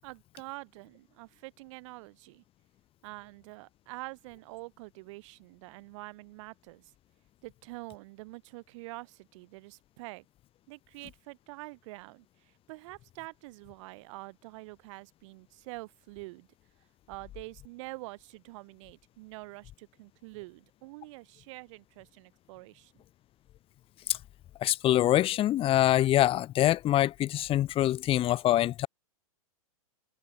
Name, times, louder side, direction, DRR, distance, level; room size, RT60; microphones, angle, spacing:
voice 1, 0.0-2.4 3.0-6.9 7.4-10.3 10.7-16.5 17.1-23.0, right 23 dB, 55° right, 7.1 m, -46 dB
voice 2, 24.6-28.9, left 13 dB, 30° left, 1.3 m, -25 dB
hypercardioid pair, 115°, 19 cm